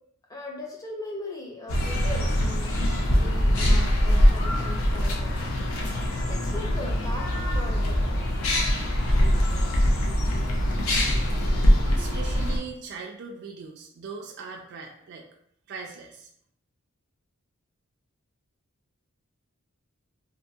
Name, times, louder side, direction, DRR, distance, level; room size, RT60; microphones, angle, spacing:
voice 1, 0.3-5.3 6.3-8.2 11.9-12.2, left 2 dB, 15° left, -1 dB, 0.4 m, -39 dB
sound 1, 1.7-12.6, equal, 65° left, 0.5 m, -23 dB
voice 2, 12.0-15.3 15.7-16.3, right 4 dB, 50° right, -1 dB, 0.3 m, -39 dB
2.6 x 2.6 x 2.3 m, 0.71 s
head